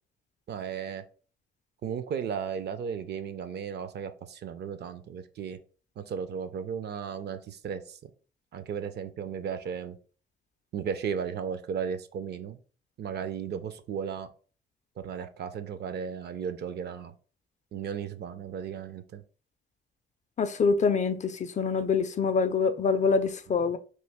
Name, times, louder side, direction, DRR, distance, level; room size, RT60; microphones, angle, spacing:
voice 1, 0.5-1.0 1.8-5.6 6.0-8.0 8.5-10.0 10.7-12.6 13.0-14.3 15.0-17.1 17.7-19.2, right 7 dB, 55° right, 0.5 m, -35 dB
voice 2, 20.4-23.8, left 5 dB, 35° left, 0.4 m, -25 dB
3.1 x 2.5 x 3.5 m
cardioid pair, 90°, 20 cm